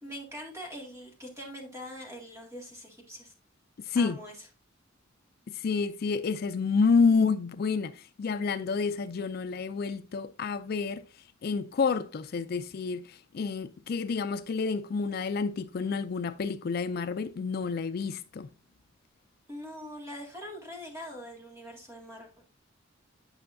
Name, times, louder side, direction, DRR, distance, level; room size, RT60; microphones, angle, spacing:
voice 1, 0.0-3.3 4.0-4.3 19.5-22.4, equal, 15° right, 2.0 m, -43 dB
voice 2, 3.8-4.2 5.5-11.0 11.4-18.5, left 5 dB, 50° left, 0.4 m, -29 dB
9.0 x 5.5 x 2.6 m
head